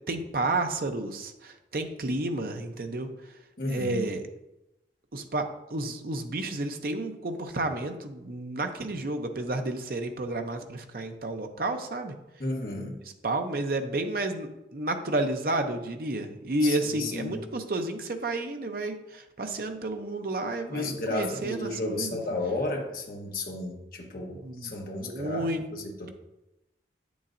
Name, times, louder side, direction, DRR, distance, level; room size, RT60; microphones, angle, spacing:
voice 1, 0.1-3.1 3.7-4.2 5.1-12.1 13.2-22.2 24.4-25.6, right 2 dB, 55° right, 6 dB, 0.6 m, -31 dB
voice 2, 3.6-4.0 12.4-13.0 16.6-17.4 20.7-26.1, left 2 dB, 50° left, 0 dB, 1.1 m, -33 dB
8.6 x 7.0 x 2.6 m, 0.95 s
head